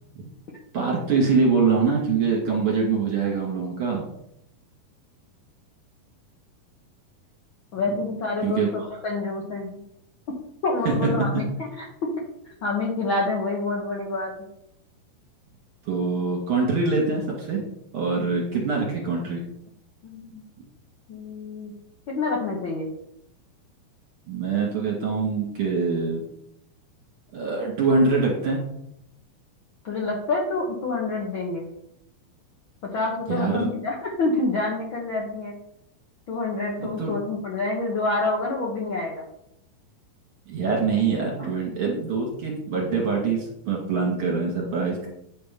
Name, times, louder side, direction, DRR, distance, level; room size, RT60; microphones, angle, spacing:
voice 1, 0.7-4.1 8.4-8.7 10.8-11.3 15.9-17.6 17.9-19.4 24.3-26.2 27.3-28.6 33.3-33.7 36.8-37.1 40.5-45.1, right 4 dB, 45° right, -2 dB, 2.5 m, -24 dB
voice 2, 7.7-9.8 10.6-12.1 12.4-14.5 20.0-20.4 21.1-21.7 22.1-22.9 29.8-31.7 32.8-35.5 36.3-39.2 41.4-41.5, left 3 dB, 70° left, -2 dB, 1.2 m, -27 dB
9.7 x 4.2 x 5.3 m, 0.75 s
omnidirectional pair, 4.2 m